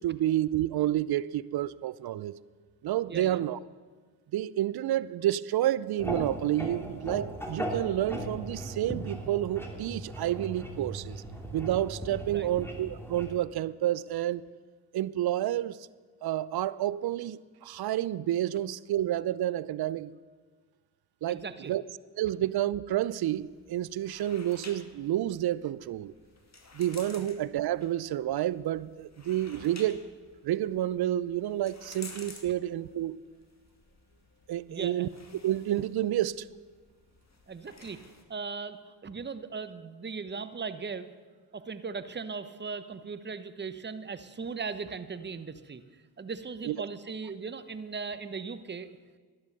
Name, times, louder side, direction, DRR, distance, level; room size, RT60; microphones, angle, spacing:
voice 1, 0.0-2.4 2.8-3.6 4.3-11.2 11.5-14.4 14.9-15.8 16.2-20.1 21.2-21.8 22.2-26.1 26.7-30.0 30.4-33.2 34.5-35.1 35.4-36.5 46.6-46.8, right 13 dB, 50° right, 19 dB, 0.6 m, -29 dB
voice 2, 3.1-3.4 12.3-12.5 21.3-21.7 27.1-27.3 29.6-29.7 34.7-34.9 37.5-38.0 38.3-41.1 41.5-45.8 46.2-48.9, right 5 dB, 20° right, 12 dB, 0.9 m, -38 dB
sound 1, 6.0-13.4, equal, 5° left, 2.8 m, -38 dB
sound 2, 23.2-38.2, left 3 dB, 30° left, 2.3 m, -53 dB
11.5 x 11.0 x 6.7 m, 1.5 s
supercardioid pair, 55°, 50 cm